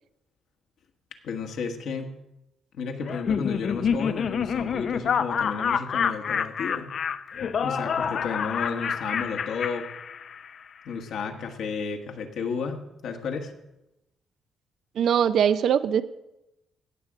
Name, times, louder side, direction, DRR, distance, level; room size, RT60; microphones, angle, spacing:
voice 1, 1.2-2.1 2.7-6.9 7.6-9.9 10.8-13.5, left 5 dB, 75° left, 4 dB, 1.4 m, -32 dB
Laughter, 3.0-10.5, left 7 dB, 55° left, 0.5 m, -28 dB
voice 2, 15.0-16.0, right 8 dB, 65° right, 13 dB, 0.4 m, -21 dB
17.0 x 6.7 x 4.9 m, 0.92 s
cardioid pair, 90°, 0 cm